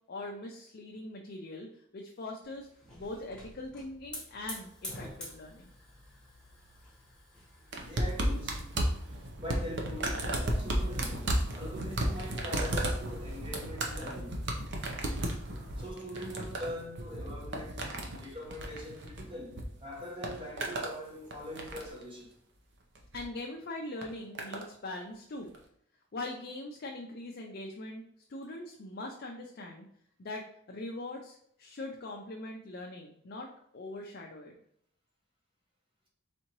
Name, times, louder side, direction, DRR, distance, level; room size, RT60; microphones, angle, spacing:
voice 1, 0.1-2.7 2.9-5.7 23.1-25.5 26.1-28.0 28.3-29.9 30.2-33.5 33.7-34.6, left 2 dB, 45° left, 0.5 m, -42 dB
Hiss / Fire, 2.4-9.3, left 2 dB, 5° left, 1.2 m, -48 dB
sound 1, 7.7-19.6 19.9-21.0 21.3-22.0 22.9-23.2 24.0-24.7 25.5-25.6, right 1 dB, 55° right, 0.7 m, -34 dB
voice 2, 7.8-8.6 9.4-14.4 15.8-22.3, left 1 dB, 25° right, 1.1 m, -42 dB
4.1 x 3.6 x 3.0 m
head